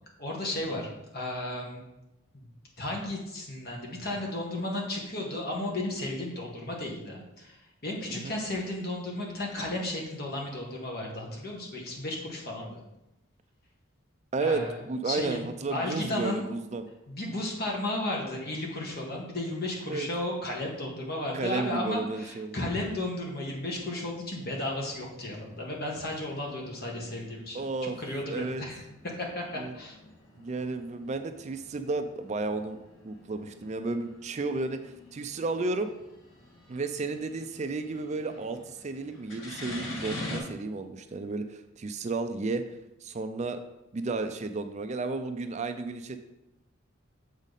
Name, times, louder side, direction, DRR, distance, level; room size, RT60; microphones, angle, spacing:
voice 1, 0.2-1.8 2.3-2.5 2.8-7.6 7.8-12.8 14.4-14.8 15.0-15.4 15.7-16.5 17.1-28.8 29.2-29.9, left 1 dB, 50° left, -1 dB, 1.6 m, -34 dB
voice 2, 14.3-16.8 19.9-20.1 21.3-22.6 27.5-28.6 29.5-29.7 30.4-32.8 33.0-35.9 36.7-42.6 43.0-43.6 43.9-46.2, right 3 dB, 35° right, 8 dB, 0.4 m, -33 dB
sound 1, 23.8-40.4, left 2 dB, 80° left, 2.1 m, -47 dB
7.2 x 5.1 x 4.1 m, 0.92 s
head